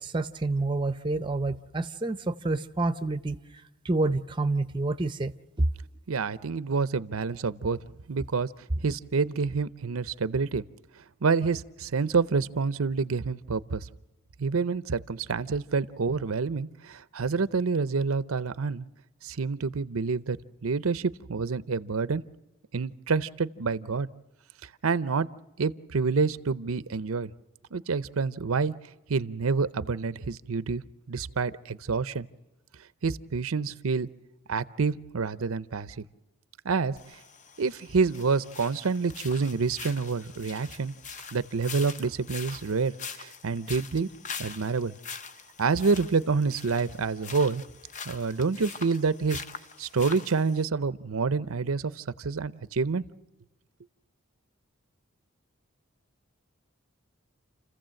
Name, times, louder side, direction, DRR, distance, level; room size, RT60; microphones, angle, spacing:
voice 1, 0.0-3.4 3.8-5.7, right 2 dB, 20° right, 11 dB, 0.6 m, -28 dB
voice 2, 6.1-7.8 8.1-8.5 8.8-10.6 11.2-13.9 14.4-18.9 19.2-20.4 20.6-22.2 22.7-24.1 24.8-25.3 25.6-27.3 27.7-28.7 29.1-30.8 31.1-32.3 33.0-34.1 34.5-36.0 36.6-37.2 37.6-40.9 41.3-44.1 44.4-44.9 45.6-47.6 48.1-49.4 49.8-53.0, right 4 dB, 85° right, 15 dB, 0.6 m, -28 dB
sound 1, 37.0-50.6, left 6 dB, 35° left, 0.7 m, -43 dB
29.0 x 15.0 x 7.6 m, 1.1 s
head